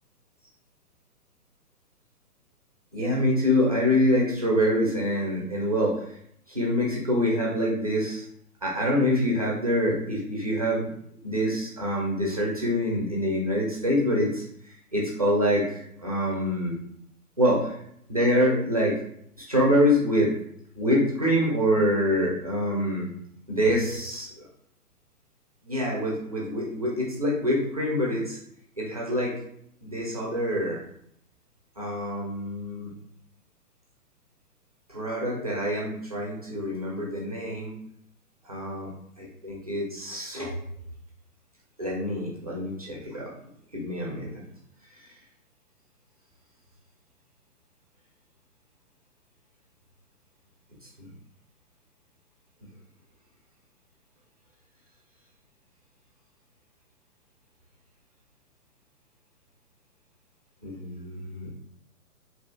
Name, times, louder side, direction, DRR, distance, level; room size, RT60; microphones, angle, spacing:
voice 1, 2.9-6.2 6.5-8.2 8.6-10.9 11.2-16.7 17.4-17.8 18.1-19.0 19.4-20.3 20.8-23.1 23.5-24.5 25.6-28.4 28.8-29.4 29.8-30.8 31.8-32.9 34.9-37.8 38.4-38.9 39.2-40.6 41.8-43.3 43.7-44.4 60.6-61.5, equal, 30° right, -3 dB, 0.3 m, -25 dB
3.2 x 2.5 x 2.3 m, 0.71 s
figure-of-eight pair, 130°, 45 cm